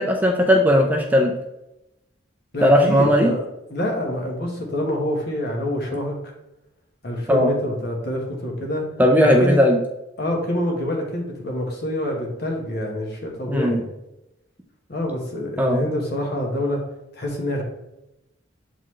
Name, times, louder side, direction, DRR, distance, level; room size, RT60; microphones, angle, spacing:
voice 1, 0.0-1.3 2.6-3.3 7.3-7.5 9.0-9.8 13.5-13.8 15.6-15.8, equal, 10° right, 2 dB, 0.5 m, -17 dB
voice 2, 2.5-3.4 3.7-6.1 7.0-8.9 9.2-9.6 10.2-13.8 14.9-16.8 17.1-17.6, left 1 dB, 55° left, 0 dB, 1.4 m, -26 dB
7.5 x 4.0 x 3.2 m, 0.90 s
head